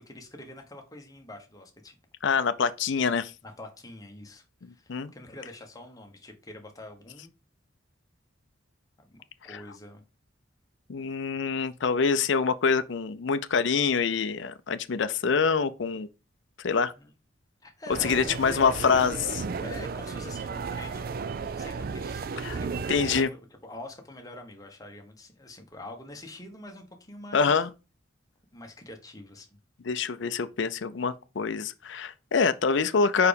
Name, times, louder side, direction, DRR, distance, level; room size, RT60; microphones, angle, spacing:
voice 1, 0.1-2.0 3.4-7.3 9.0-10.0 17.0-17.1 17.6-18.6 19.6-21.1 21.6-27.6 28.5-29.5, left 1 dB, 20° left, 1.2 m, -45 dB
voice 2, 2.2-3.3 4.9-5.1 10.9-16.1 16.6-16.9 18.0-19.4 22.4-22.6 22.9-23.3 27.3-27.7 29.9-33.3, left 5 dB, 60° left, 0.5 m, -25 dB
sound 1, 17.9-23.2, right 5 dB, 45° right, 0.4 m, -34 dB
4.8 x 4.7 x 5.1 m
head